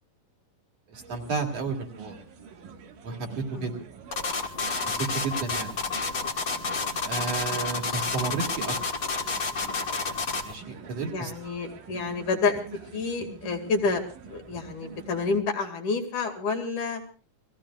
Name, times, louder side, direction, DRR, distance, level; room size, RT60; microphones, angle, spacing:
voice 1, 0.9-2.2 3.0-3.7 5.0-5.7 7.0-8.8 10.4-11.3, right 4 dB, 55° right, 1 dB, 3.2 m, -32 dB
sound 1, 0.9-15.4, right 5 dB, 80° right, 3.3 m, -46 dB
sound 2, 4.1-10.5, left 4 dB, 40° left, 1.4 m, -29 dB
voice 2, 11.1-12.6 12.9-14.0 14.3-17.0, left 4 dB, 70° left, 2 dB, 3.7 m, -29 dB
29.5 x 20.0 x 2.4 m, 0.37 s
omnidirectional pair, 3.6 m